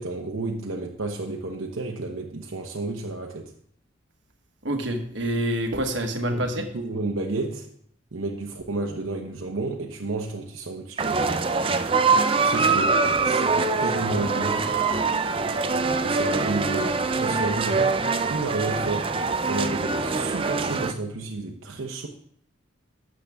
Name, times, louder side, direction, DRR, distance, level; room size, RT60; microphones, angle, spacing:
voice 1, 0.0-3.5 6.2-7.7 8.1-11.2 12.4-14.7 16.0-22.1, right 2 dB, 80° right, 0.9 m, -31 dB
voice 2, 4.6-6.7, right 1 dB, 65° right, 1.3 m, -27 dB
sound 1, 11.0-20.9, right 4 dB, 25° right, 0.4 m, -24 dB
12.0 x 7.5 x 3.5 m
head